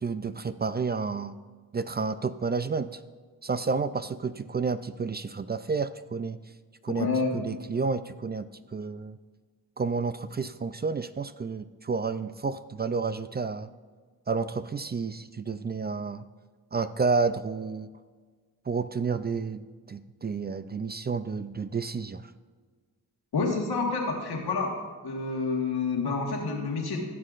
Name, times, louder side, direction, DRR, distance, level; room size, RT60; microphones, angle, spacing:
voice 1, 0.0-1.4 1.7-3.0 3.4-6.4 6.8-9.2 9.8-13.7 14.3-16.2 16.7-17.9 18.7-22.3, right 4 dB, 30° right, 12 dB, 0.3 m, -30 dB
voice 2, 7.0-7.4 23.3-24.8 25.0-27.0, left 4 dB, 85° left, 1 dB, 1.5 m, -28 dB
15.0 x 6.5 x 2.5 m, 1.5 s
cardioid pair, 40°, 37 cm